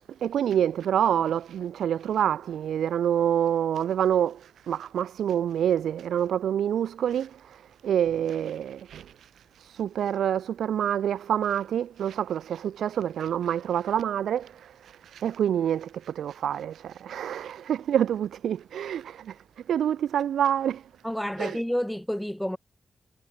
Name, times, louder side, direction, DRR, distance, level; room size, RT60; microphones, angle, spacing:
voice 1, 0.2-19.4 19.7-20.8 21.4-21.6, right 9 dB, 90° right, 1.4 m, -27 dB
voice 2, 21.0-22.6, equal, 5° left, 5.1 m, -29 dB
supercardioid pair, 45°, 0 cm